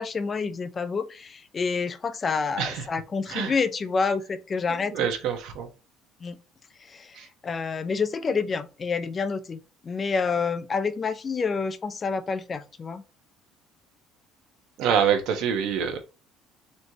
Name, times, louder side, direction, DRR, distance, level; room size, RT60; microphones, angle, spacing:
voice 1, 0.0-5.1 6.2-6.4 6.9-7.1 7.4-13.0, left 5 dB, 20° left, 0.5 m, -28 dB
voice 2, 4.9-5.7 14.8-16.0, right 7 dB, 60° right, 1.1 m, -25 dB
4.2 x 3.2 x 2.8 m
cardioid pair, 170°, 0 cm